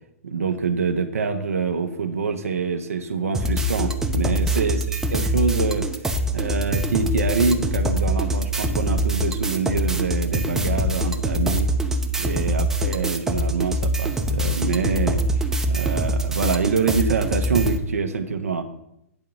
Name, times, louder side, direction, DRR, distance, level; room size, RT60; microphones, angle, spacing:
voice 1, 0.2-5.9 6.3-11.7 12.2-18.6, right 5 dB, 75° right, 5 dB, 0.8 m, -25 dB
sound 1, 3.3-17.8, equal, 5° right, 0.7 m, -24 dB
8.9 x 4.7 x 5.4 m, 0.80 s
figure-of-eight pair, 115°, 8 cm